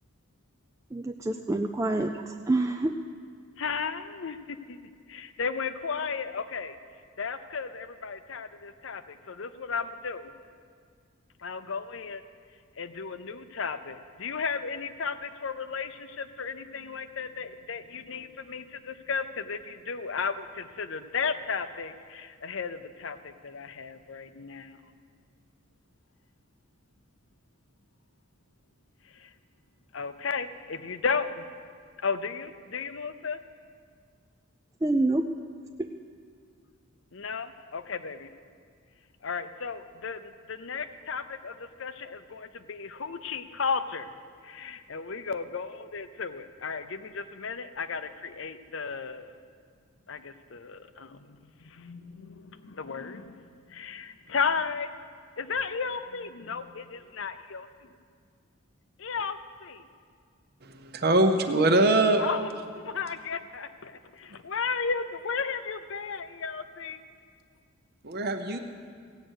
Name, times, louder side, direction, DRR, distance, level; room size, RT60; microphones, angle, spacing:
voice 1, 0.9-3.0 34.8-35.2 35.8-35.9, right 2 dB, 15° right, 4 dB, 0.3 m, -27 dB
voice 2, 3.6-6.8 7.2-10.3 11.4-12.2 12.8-24.8 29.0-29.3 29.9-31.4 32.0-33.4 37.1-38.3 39.2-44.1 44.4-49.4 50.1-54.9 55.4-57.9 59.0-59.9 62.2-67.0, left 5 dB, 65° left, 11 dB, 0.6 m, -34 dB
voice 3, 60.6-62.2 68.0-68.6, right 2 dB, 50° right, 6 dB, 0.8 m, -23 dB
16.5 x 9.1 x 6.4 m, 2.1 s
head